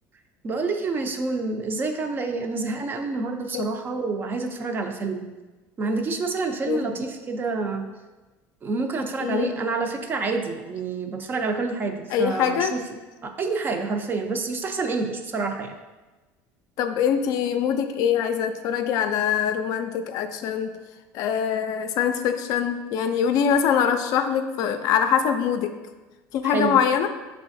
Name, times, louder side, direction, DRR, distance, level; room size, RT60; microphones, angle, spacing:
voice 1, 0.4-5.3 5.8-7.9 8.6-12.8 13.2-15.7 26.4-26.8, right 3 dB, 30° right, 5 dB, 0.5 m, -28 dB
voice 2, 9.2-9.6 12.1-12.8 16.8-20.7 21.1-25.7 26.3-27.1, left 8 dB, 60° left, 8 dB, 0.4 m, -23 dB
5.5 x 3.3 x 2.6 m, 1.2 s
cardioid pair, 125°, 7 cm